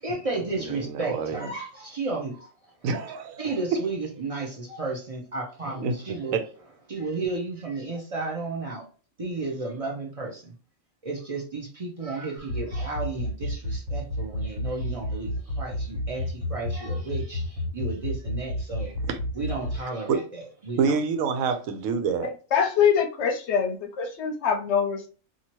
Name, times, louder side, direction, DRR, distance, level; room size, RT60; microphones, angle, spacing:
voice 1, 0.0-2.7 3.4-6.4 6.9-8.9 9.2-10.5 11.0-19.0 19.3-21.0, right 3 dB, 40° right, 0.5 m, -33 dB
voice 2, 0.7-1.4 2.8-3.5 5.8-5.9 6.3-6.4 19.1-19.2 20.1-20.2 20.8-22.3, right 5 dB, 90° right, 1.0 m, -26 dB
sound 1, 12.4-19.8, left 1 dB, 65° right, 1.5 m, -29 dB
voice 3, 22.2-25.1, left 7 dB, 65° left, 0.8 m, -24 dB
2.8 x 2.4 x 2.9 m
omnidirectional pair, 1.4 m